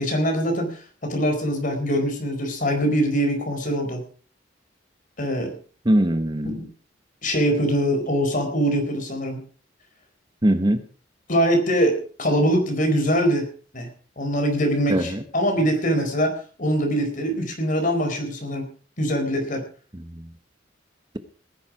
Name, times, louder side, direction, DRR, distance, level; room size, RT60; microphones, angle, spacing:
voice 1, 0.0-4.0 5.2-5.5 6.5-6.7 7.2-9.4 11.3-13.5 13.7-13.9 14.2-18.7 19.0-19.6, equal, 45° left, 5 dB, 4.4 m, -23 dB
voice 2, 5.8-6.6 10.4-10.8 14.9-15.2 19.9-20.2, right 1 dB, 25° right, 10 dB, 1.0 m, -21 dB
18.5 x 10.5 x 4.9 m, 0.39 s
head